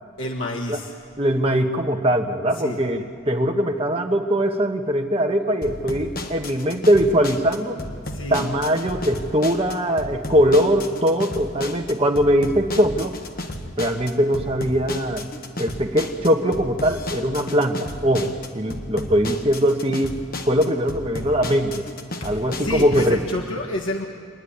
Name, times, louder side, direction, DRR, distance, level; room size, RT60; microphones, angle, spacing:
voice 1, 0.2-0.9 2.5-2.8 8.0-8.5 22.2-24.0, left 2 dB, 70° left, -1 dB, 1.7 m, -29 dB
voice 2, 1.2-7.8 8.3-13.1 13.8-15.3 15.6-21.9 22.2-23.2, equal, 30° right, 4 dB, 1.2 m, -21 dB
sound 1, 5.6-23.1, left 2 dB, 45° left, 1.2 m, -33 dB
26.0 x 10.0 x 10.0 m, 2.3 s
head